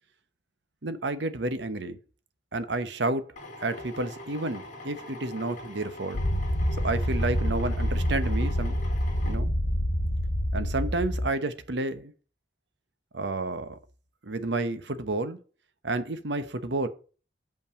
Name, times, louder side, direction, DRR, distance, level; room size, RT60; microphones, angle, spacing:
voice 1, 0.8-2.0 2.5-3.2 3.6-6.2 6.8-8.8 9.2-9.5 10.5-12.1 13.1-13.8 14.2-15.4 15.8-16.9, right 2 dB, 65° right, 1.0 m, -30 dB
Drill, 3.4-9.4, left 2 dB, 45° left, 2.4 m, -43 dB
sound 1, 6.1-11.3, equal, 75° left, 1.4 m, -27 dB
7.0 x 5.7 x 6.9 m
head